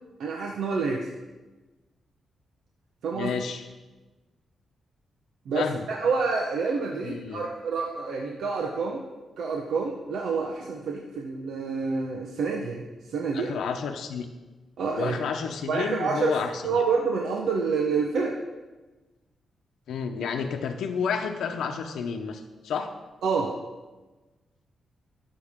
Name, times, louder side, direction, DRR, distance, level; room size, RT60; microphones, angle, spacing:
voice 1, 0.2-1.1 3.0-3.3 5.5-9.0 9.4-13.5 14.8-15.2 15.7-16.4 16.6-18.4 23.2-23.6, right 4 dB, 75° right, 0 dB, 1.0 m, -28 dB
voice 2, 3.1-3.6 5.5-5.8 7.0-7.5 13.3-14.2 15.0-16.8 19.9-22.9, left 6 dB, 85° left, 4 dB, 0.8 m, -30 dB
19.5 x 6.9 x 3.7 m, 1.2 s
wide cardioid pair, 160°, 0 cm